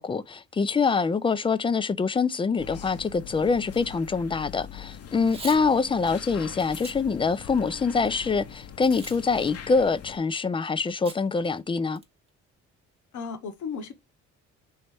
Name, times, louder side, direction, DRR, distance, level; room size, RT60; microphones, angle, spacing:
voice 1, 0.0-12.0, left 4 dB, 20° left, 0.3 m, -25 dB
sound 1, 2.6-10.2, left 9 dB, 55° left, 0.7 m, -42 dB
Packing tape duct tape / Tearing, 5.2-5.6 6.1-6.2 6.7-7.0 7.5-8.1 8.8-9.2 9.5-9.6 11.1-11.2 11.6-11.7 12.0-12.3, right 3 dB, 20° right, 0.9 m, -42 dB
voice 2, 13.1-13.9, left 5 dB, 75° left, 1.0 m, -35 dB
3.1 x 3.0 x 4.6 m
cardioid pair, 90°, 30 cm